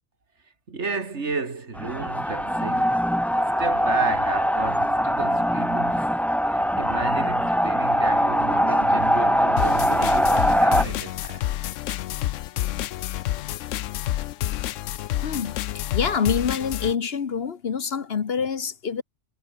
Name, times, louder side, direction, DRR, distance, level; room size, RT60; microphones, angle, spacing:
voice 1, 0.7-3.0 3.4-6.1 6.5-11.5, right 4 dB, 65° right, 2.5 m, -32 dB
sound 1, 1.8-10.8, equal, ahead, 1.9 m, -22 dB
sound 2, 9.6-16.9, left 13 dB, 80° left, 1.0 m, -29 dB
voice 2, 15.2-19.0, left 6 dB, 55° left, 1.2 m, -26 dB
omnidirectional pair, 1.3 m